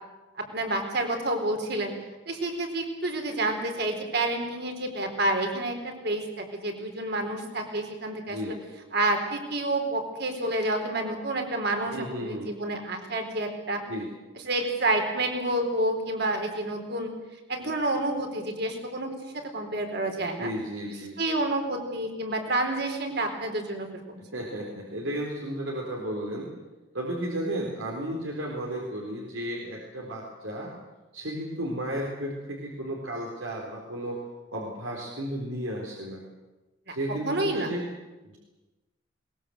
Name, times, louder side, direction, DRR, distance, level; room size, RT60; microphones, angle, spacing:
voice 1, 0.4-1.9 2.3-8.5 8.9-13.8 14.4-17.1 17.5-20.5 21.2-24.0 36.9-37.0 37.3-37.7, right 2 dB, 55° right, 4 dB, 4.1 m, -29 dB
voice 2, 11.9-12.5 13.9-14.1 20.2-21.2 24.3-26.5 26.9-30.7 31.1-34.2 34.5-36.3 36.9-37.8 38.2-38.4, right 1 dB, 80° right, -1 dB, 4.2 m, -33 dB
21.5 x 20.5 x 7.9 m, 1.1 s
head